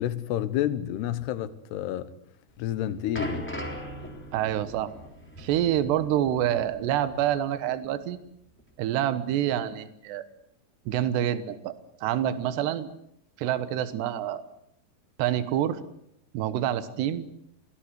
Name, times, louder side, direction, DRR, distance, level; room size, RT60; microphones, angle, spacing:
voice 1, 0.0-2.1 2.6-3.5, left 12 dB, 80° left, 3.1 m, -29 dB
sound 1, 2.5-7.4 7.7-7.9 8.6-8.7, equal, 5° left, 2.9 m, -39 dB
voice 2, 4.3-4.9 5.4-8.2 8.8-10.2 10.9-12.9 13.4-14.4 15.2-15.8 16.3-17.3, right 11 dB, 80° right, 3.4 m, -27 dB
25.0 x 18.5 x 8.1 m
omnidirectional pair, 4.8 m